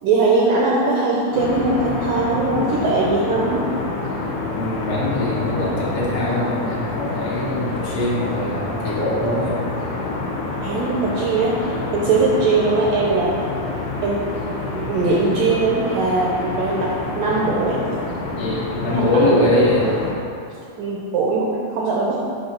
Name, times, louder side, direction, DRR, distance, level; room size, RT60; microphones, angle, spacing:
voice 1, 0.0-3.7 10.6-13.4 14.0-14.3 14.7-17.8 18.9-19.6 20.8-22.2, right 3 dB, 80° right, -4 dB, 2.0 m, -20 dB
sound 1, 1.3-20.1, left 3 dB, 85° left, 1.6 m, -27 dB
voice 2, 4.6-9.6 12.1-12.2 18.4-19.8, left 1 dB, 70° left, -6 dB, 1.5 m, -22 dB
7.4 x 2.7 x 5.8 m, 2.4 s
omnidirectional pair, 4.4 m